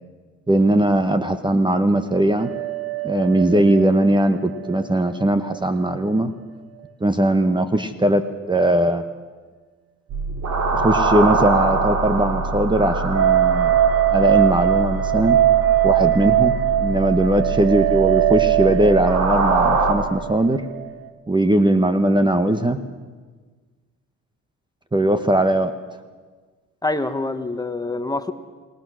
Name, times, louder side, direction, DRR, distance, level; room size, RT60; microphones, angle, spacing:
voice 1, 0.5-2.5 3.0-6.3 7.0-9.0 10.7-13.7 14.1-15.4 15.8-20.6 21.3-22.8 24.9-25.7, right 1 dB, 15° right, 9 dB, 1.1 m, -19 dB
sound 1, 2.4-5.6 5.8-5.9 13.1-21.1, right 12 dB, 50° right, 1.5 m, -21 dB
sound 2, 10.1-19.9, right 3 dB, 65° right, 3.4 m, -24 dB
voice 2, 26.8-28.3, left 2 dB, 10° left, 9 dB, 1.3 m, -25 dB
29.0 x 19.0 x 6.3 m, 1.4 s
cardioid pair, 90°, 30 cm